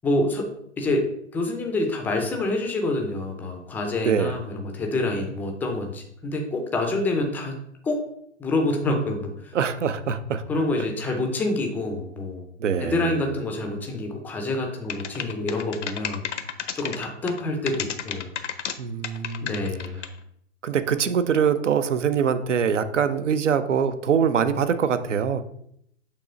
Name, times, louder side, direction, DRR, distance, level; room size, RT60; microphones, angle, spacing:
voice 1, 0.0-0.5 0.8-7.5 7.8-8.0 8.4-9.5 10.5-12.4 12.8-16.3 16.7-18.3 19.4-20.0, left 2 dB, 5° left, 3 dB, 0.4 m, -27 dB
voice 2, 4.0-4.4 9.5-10.4 12.6-13.2 18.8-19.6 20.6-25.4, right 7 dB, 75° right, 11 dB, 0.7 m, -23 dB
sound 1, 14.9-17.4 17.7-18.8 19.0-20.2, left 8 dB, 70° left, 0.7 m, -31 dB
6.7 x 3.0 x 5.1 m, 0.73 s
figure-of-eight pair, 115°, 37 cm